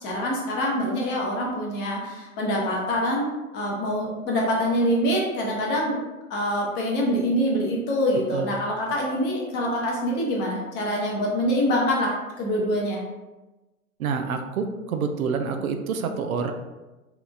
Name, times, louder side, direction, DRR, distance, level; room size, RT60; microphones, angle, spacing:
voice 1, 0.0-6.0 6.3-13.0, equal, 25° left, -2 dB, 0.8 m, -25 dB
voice 2, 14.0-16.5, right 5 dB, 75° right, 6 dB, 0.6 m, -27 dB
3.4 x 2.9 x 2.4 m, 1.1 s
hypercardioid pair, 120°, 43 cm